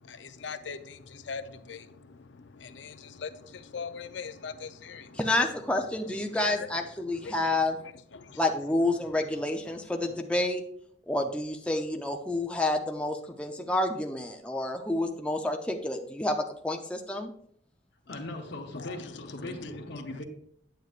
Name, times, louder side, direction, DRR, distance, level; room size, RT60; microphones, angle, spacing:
voice 1, 0.0-5.2 6.3-6.7 7.1-7.6 8.1-8.4 9.7-9.8 10.1-10.2 18.7-20.0, left 5 dB, 90° left, 10 dB, 0.6 m, -42 dB
voice 2, 5.2-7.8 8.4-10.6 11.1-17.3, left 2 dB, 5° left, 2 dB, 0.6 m, -29 dB
voice 3, 18.1-20.3, left 1 dB, 75° left, -1 dB, 1.0 m, -39 dB
9.1 x 7.9 x 2.4 m, 0.66 s
head